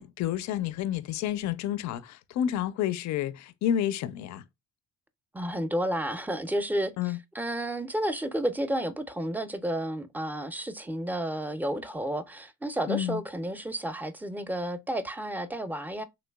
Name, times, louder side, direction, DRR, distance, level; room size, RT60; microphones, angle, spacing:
voice 1, 0.0-4.4 7.0-7.2 12.9-13.2, left 10 dB, 65° left, 0.4 m, -30 dB
voice 2, 5.3-16.0, right 1 dB, 5° right, 0.4 m, -31 dB
3.2 x 2.9 x 2.2 m
cardioid pair, 90°, 30 cm